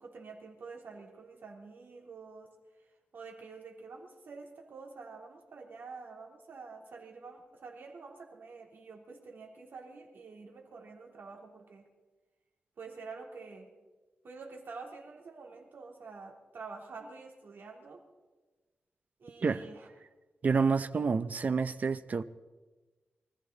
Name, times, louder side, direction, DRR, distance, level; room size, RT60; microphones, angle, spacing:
voice 1, 0.0-2.5 3.1-11.9 12.8-13.7 14.2-18.0 19.2-19.9, right 4 dB, 65° right, 3.1 m, -48 dB
voice 2, 20.4-22.2, right 5 dB, 45° right, 0.7 m, -28 dB
24.0 x 14.0 x 4.0 m
wide cardioid pair, 130°, 4 cm